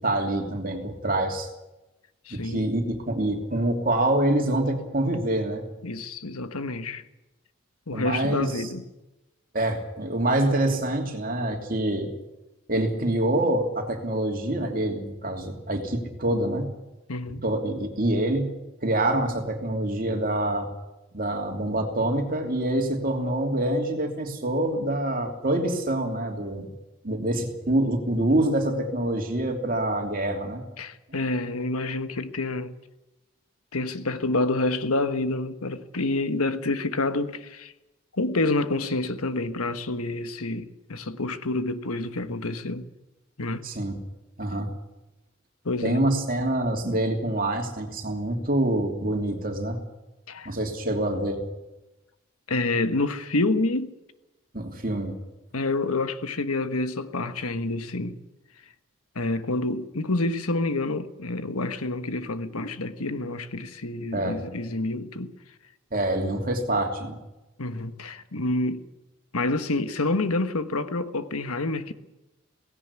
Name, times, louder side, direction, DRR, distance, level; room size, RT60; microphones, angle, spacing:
voice 1, 0.0-1.5 2.3-5.6 7.9-8.7 9.5-12.1 12.7-16.7 17.4-18.5 18.8-20.7 21.1-26.7 27.0-30.6 43.6-44.0 44.4-44.7 45.8-49.8 50.4-51.4 54.5-55.2 64.1-64.4 65.9-67.2, right 1 dB, 40° right, 2.9 m, -26 dB
voice 2, 2.3-2.7 5.8-7.1 7.9-8.8 17.1-17.4 30.8-32.7 33.7-37.7 38.2-42.8 43.4-43.7 45.6-46.0 50.3-50.5 52.5-53.9 55.5-58.2 59.1-65.3 67.6-68.8 69.3-71.9, left 2 dB, 90° left, 1.4 m, -28 dB
18.0 x 17.0 x 9.7 m
head